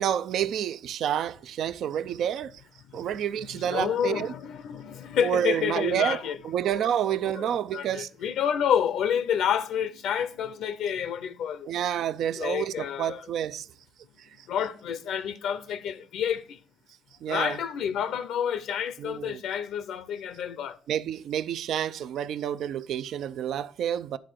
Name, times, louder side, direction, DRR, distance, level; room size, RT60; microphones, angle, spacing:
voice 1, 0.0-2.6 2.9-4.3 5.2-8.1 11.7-13.7 14.2-14.5 17.2-17.6 19.0-19.4 20.9-24.2, right 10 dB, 75° right, 0.4 m, -29 dB
voice 2, 3.7-6.4 7.4-7.5 7.7-11.7 12.4-13.2 14.5-16.6 17.3-20.8, left 8 dB, 80° left, 0.6 m, -29 dB
10.5 x 3.9 x 6.5 m
cardioid pair, 90°, 0 cm